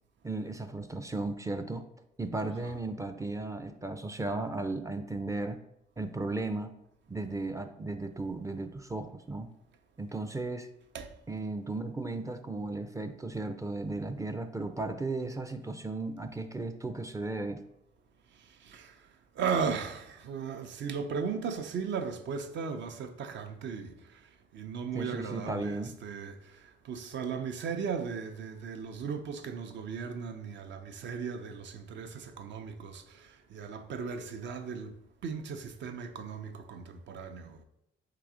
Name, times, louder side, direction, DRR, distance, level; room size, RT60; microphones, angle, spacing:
voice 1, 0.2-1.9 2.2-5.6 6.0-6.7 7.1-9.5 10.0-10.7 11.3-17.6 24.9-25.9, right 2 dB, 15° right, 0.4 m, -35 dB
voice 2, 18.6-19.0 19.4-24.3 24.5-34.9 35.2-37.6, right 6 dB, 65° right, 0.6 m, -37 dB
3.8 x 2.9 x 4.8 m
cardioid pair, 90°, 20 cm